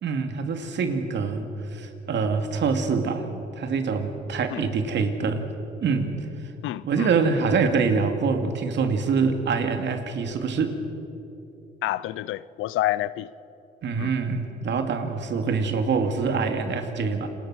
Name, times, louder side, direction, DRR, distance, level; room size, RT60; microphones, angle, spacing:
voice 1, 0.0-5.5 5.8-6.3 6.8-10.8 13.8-17.3, right 5 dB, 65° right, 2.6 m, -25 dB
voice 2, 6.6-7.1 11.8-13.3 14.0-14.1, left 15 dB, 90° left, 0.7 m, -28 dB
29.0 x 21.0 x 6.4 m
cardioid pair, 90°, 20 cm